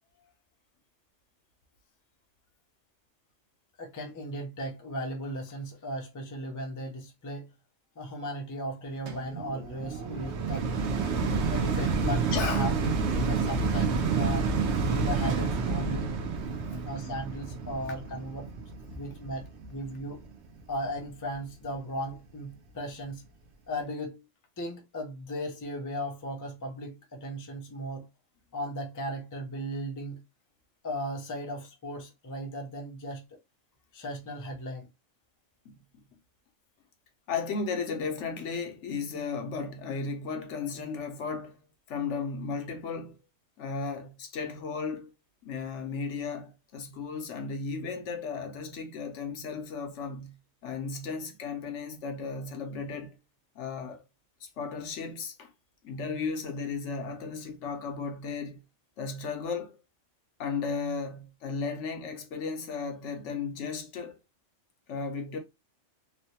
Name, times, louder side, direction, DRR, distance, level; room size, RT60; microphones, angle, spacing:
voice 1, 3.8-7.5 8.0-10.7 11.5-14.5 14.8-16.1 16.8-18.5 18.9-20.2 20.7-23.2 23.7-24.2 24.6-28.1 28.5-30.2 30.8-33.4 33.9-34.9, equal, 25° left, 0.4 m, -36 dB
sound 1, 9.1-20.3 20.9-21.0, right 4 dB, 65° right, 0.8 m, -29 dB
voice 2, 12.3-12.7 16.7-16.9 35.7-35.8 37.3-41.6 41.9-43.2 43.6-45.1 45.4-50.4 50.6-53.2 53.6-54.0 54.4-55.5 55.8-58.6 59.0-59.8 60.4-64.2 64.9-65.4, left 5 dB, 70° left, 0.9 m, -35 dB
3.1 x 2.1 x 2.7 m
omnidirectional pair, 1.3 m